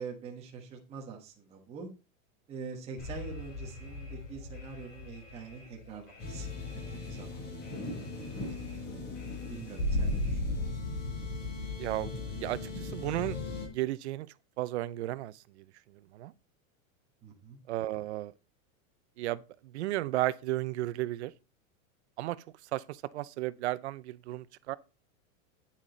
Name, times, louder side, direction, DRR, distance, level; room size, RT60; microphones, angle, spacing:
voice 1, 0.0-1.9 2.5-6.5 6.9-7.4 9.5-10.8 17.2-17.6, right 5 dB, 15° right, 1.3 m, -44 dB
Alarm, 3.0-10.7, left 3 dB, 65° left, 4.5 m, -48 dB
sound 1, 6.2-13.7, left 2 dB, 40° left, 4.7 m, -35 dB
voice 2, 11.8-13.4 13.7-14.3 14.6-15.6 16.1-16.3 17.7-18.3 19.2-21.3 22.2-22.4 22.7-24.8, right 15 dB, 55° right, 0.6 m, -34 dB
9.3 x 7.4 x 3.9 m
supercardioid pair, 175°, 41 cm